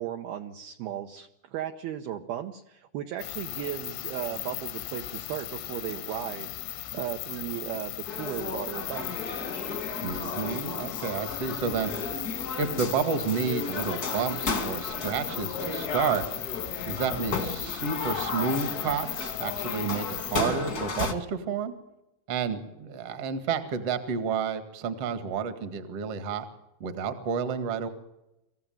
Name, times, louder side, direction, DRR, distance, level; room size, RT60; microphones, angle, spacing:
voice 1, 0.0-9.1, right 11 dB, 80° right, 5 dB, 2.2 m, -36 dB
sound 1, 3.2-20.4, left 15 dB, 80° left, 3.6 m, -37 dB
sound 2, 8.1-21.1, left 3 dB, 45° left, 1.1 m, -34 dB
voice 2, 10.0-11.9 12.6-16.3 16.8-21.7 22.3-26.5 26.8-27.9, right 6 dB, 55° right, 10 dB, 1.7 m, -30 dB
26.0 x 15.5 x 9.2 m, 0.91 s
omnidirectional pair, 5.8 m